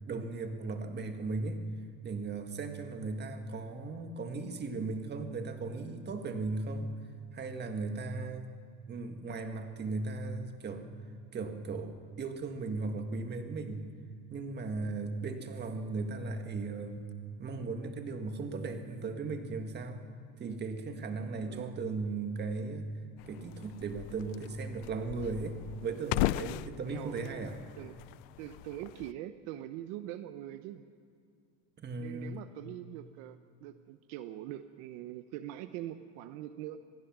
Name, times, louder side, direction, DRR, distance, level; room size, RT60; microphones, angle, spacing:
voice 1, 0.1-1.6 2.0-6.9 7.3-8.5 8.9-10.8 11.3-13.9 14.3-17.1 17.4-20.0 20.4-22.9 23.3-27.6 31.8-32.4, right 3 dB, 25° right, 6 dB, 1.7 m, -37 dB
voice 2, 21.4-21.8 26.9-27.3 27.8-28.0 28.4-30.8 32.0-36.8, right 13 dB, 65° right, 10 dB, 0.9 m, -43 dB
sound 1, 23.2-29.1, left 17 dB, 75° left, 0.6 m, -38 dB
26.5 x 17.5 x 6.2 m, 2.3 s
cardioid pair, 140°, 39 cm